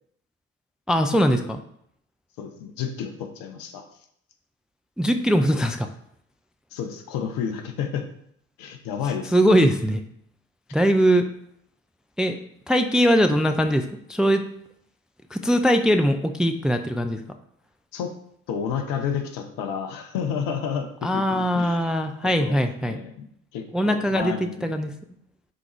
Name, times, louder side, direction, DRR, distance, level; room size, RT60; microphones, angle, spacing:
voice 1, 0.9-1.6 5.0-5.9 9.3-10.0 10.7-11.3 12.2-12.4 12.7-14.4 15.3-17.2 21.0-23.0 23.7-24.3 24.6-24.9, equal, ahead, 7 dB, 0.5 m, -21 dB
voice 2, 2.4-3.9 6.7-8.1 8.6-9.5 17.9-18.1 18.5-21.8 22.2-23.1 23.5-24.8, left 7 dB, 60° left, 6 dB, 1.0 m, -31 dB
10.0 x 3.9 x 3.0 m, 0.69 s
figure-of-eight pair, 50°, 39 cm